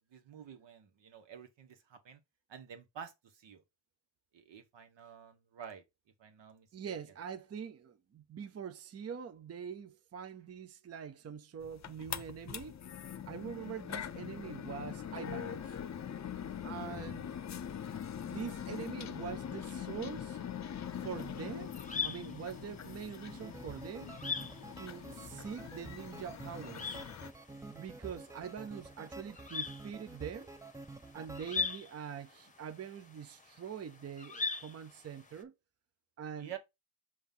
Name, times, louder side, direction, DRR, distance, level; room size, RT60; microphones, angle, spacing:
voice 1, 0.0-2.2 2.5-3.6 4.3-5.8 6.2-6.9 36.4-36.6, right 8 dB, 75° right, 1.6 m, -50 dB
voice 2, 6.7-12.8 13.3-15.8 16.6-17.3 18.2-20.4 21.0-21.8 22.0-24.1 24.8-27.0 27.7-30.5 31.1-35.5 36.2-36.5, right 7 dB, 35° right, 0.7 m, -44 dB
sound 1, 11.6-27.3, left 8 dB, 40° left, 0.7 m, -43 dB
sound 2, 21.1-35.4, left 4 dB, 15° left, 1.1 m, -43 dB
sound 3, 23.2-31.8, right 3 dB, 10° right, 0.3 m, -49 dB
5.7 x 3.1 x 5.4 m
cardioid pair, 90°, 43 cm